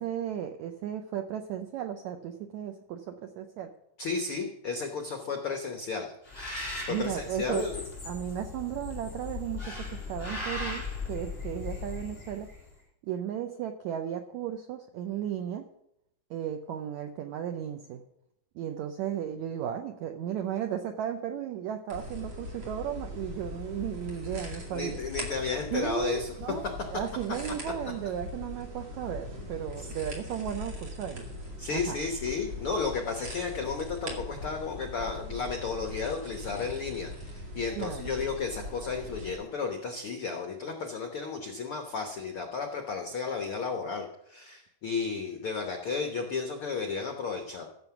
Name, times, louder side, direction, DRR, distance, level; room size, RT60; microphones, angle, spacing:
voice 1, 0.0-3.7 6.9-7.7 8.0-12.5 13.0-15.7 16.3-18.0 18.5-25.0 25.7-31.3 31.7-32.0 37.7-38.1, right 10 dB, 85° right, 6 dB, 1.6 m, -35 dB
voice 2, 4.0-6.1 6.9-7.8 24.7-26.3 29.8-29.9 31.6-47.7, left 5 dB, 75° left, 3 dB, 1.2 m, -33 dB
Bird, 6.2-12.7, left 3 dB, 15° left, 5.5 m, -38 dB
sound 1, 21.9-39.3, left 1 dB, 35° right, 2.6 m, -41 dB
15.0 x 7.1 x 5.9 m, 0.79 s
omnidirectional pair, 4.2 m